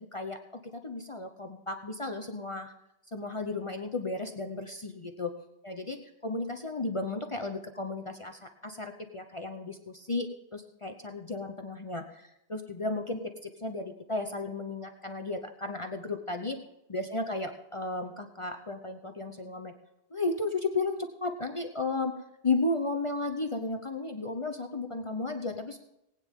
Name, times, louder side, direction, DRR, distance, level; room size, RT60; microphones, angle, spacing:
voice 1, 0.0-2.7 3.1-5.3 5.6-16.6 16.9-19.7 20.1-22.1 22.4-25.8, left 3 dB, 30° left, 5 dB, 0.8 m, -34 dB
19.5 x 9.2 x 3.7 m, 0.87 s
omnidirectional pair, 1.1 m